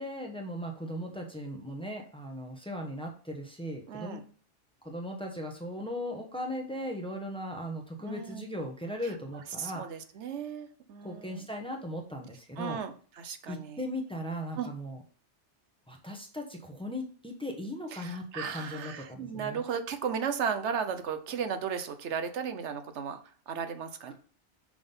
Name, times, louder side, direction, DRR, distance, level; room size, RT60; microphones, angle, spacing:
voice 1, 0.0-4.2 4.8-9.8 11.0-12.8 13.5-15.0 15.9-19.6 24.1-24.2, equal, 5° left, 1 dB, 1.1 m, -38 dB
voice 2, 3.9-4.2 8.0-8.5 9.6-11.5 12.6-13.8 14.6-14.7 17.9-23.2 23.5-24.1, right 7 dB, 80° right, 9 dB, 1.1 m, -35 dB
6.1 x 3.7 x 5.4 m, 0.42 s
omnidirectional pair, 1.2 m